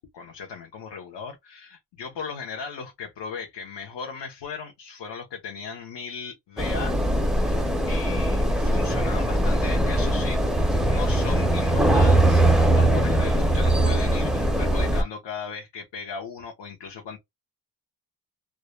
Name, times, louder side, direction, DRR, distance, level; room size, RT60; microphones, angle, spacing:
voice 1, 0.1-7.0 7.3-10.4 10.9-17.2, left 5 dB, 80° left, 0.7 m, -37 dB
sound 1, 6.6-15.0, right 1 dB, ahead, 0.4 m, -21 dB
2.3 x 2.1 x 2.9 m
wide cardioid pair, 115°, 42 cm